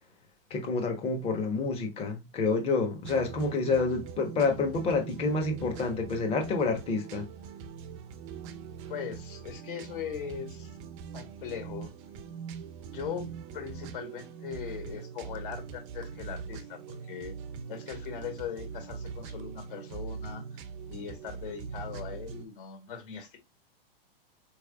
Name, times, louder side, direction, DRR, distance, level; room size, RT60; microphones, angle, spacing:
voice 1, 0.5-7.3, left 3 dB, 20° left, 0.9 m, -28 dB
sound 1, 3.0-22.4, right 6 dB, 35° right, 0.5 m, -42 dB
voice 2, 8.9-10.7 11.1-11.9 12.9-17.3 17.7-20.4 20.9-23.4, left 8 dB, 60° left, 1.9 m, -40 dB
4.5 x 3.2 x 2.3 m
hypercardioid pair, 145°, 30 cm